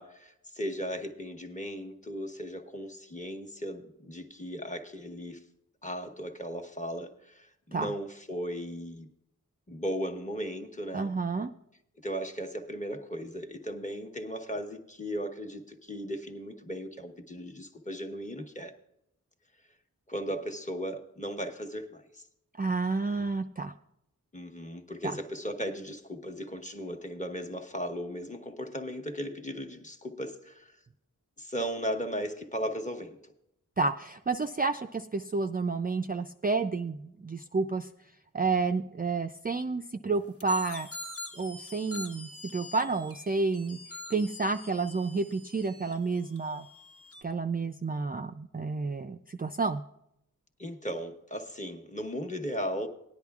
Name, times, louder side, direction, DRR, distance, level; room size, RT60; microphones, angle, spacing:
voice 1, 0.0-5.4 5.8-9.1 9.7-11.1 12.0-18.7 20.1-22.2 24.3-30.7 31.4-33.2 50.6-52.9, equal, 20° left, 4 dB, 1.1 m, -36 dB
voice 2, 10.9-11.5 22.6-23.7 25.0-25.2 33.8-37.9 38.3-40.9 41.4-43.8 44.1-46.7 47.2-49.8, right 4 dB, 25° right, 6 dB, 0.3 m, -30 dB
sound 1, 40.4-47.2, left 1 dB, 40° left, 1.3 m, -45 dB
18.0 x 10.0 x 2.4 m, 0.81 s
wide cardioid pair, 60°, 34 cm